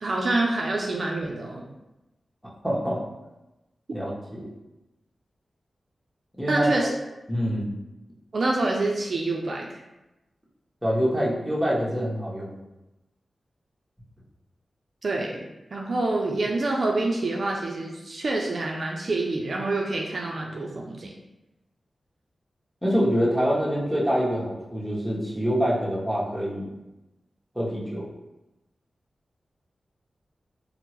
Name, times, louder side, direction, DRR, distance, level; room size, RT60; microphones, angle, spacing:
voice 1, 0.0-1.7 6.5-6.9 8.3-9.8 15.0-21.1, right 2 dB, 65° right, -1 dB, 0.4 m, -27 dB
voice 2, 2.6-3.0 3.9-4.5 6.4-6.7 7.3-7.7 10.8-12.6 22.8-26.7 27.5-28.0, equal, 5° right, -6 dB, 1.1 m, -25 dB
3.4 x 2.0 x 2.9 m, 0.98 s
cardioid pair, 50°, 0 cm